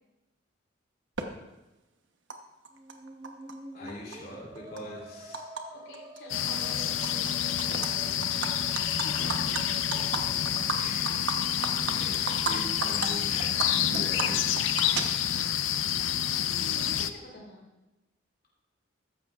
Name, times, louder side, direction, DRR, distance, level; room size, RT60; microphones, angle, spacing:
Animal, 1.2-1.3 2.3-2.4 2.6-3.5 3.9-5.6 5.9-6.2 6.5-7.3 7.6-7.9 8.2-12.5 12.8-13.1 13.4-15.5, right 4 dB, 75° right, 1.1 m, -34 dB
Musical instrument, 2.7-11.5, equal, 25° right, 1.2 m, -48 dB
voice 1, 3.7-5.5 9.0-9.5 9.9-10.2 10.7-11.2 11.7-14.6, left 1 dB, 50° left, -5 dB, 2.8 m, -42 dB
voice 2, 5.7-8.3 8.9-9.3 16.6-17.6, left 1 dB, 70° left, -2 dB, 3.0 m, -48 dB
sound 1, 6.3-17.1, left 10 dB, 90° left, 0.6 m, -28 dB
15.0 x 13.0 x 2.5 m, 1.0 s
head